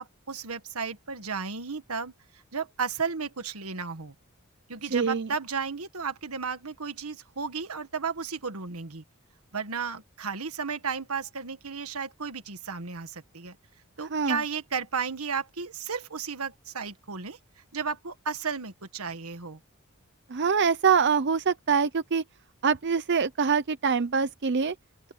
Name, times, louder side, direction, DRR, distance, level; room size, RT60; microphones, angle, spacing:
voice 1, 0.0-2.1 2.5-4.1 4.7-9.0 9.5-13.5 14.0-17.4 17.7-19.6, right 5 dB, 85° right, 1.6 m, -33 dB
voice 2, 4.9-5.3 14.1-14.4 20.3-22.2 22.6-24.7, right 6 dB, 55° right, 0.7 m, -24 dB
open air
head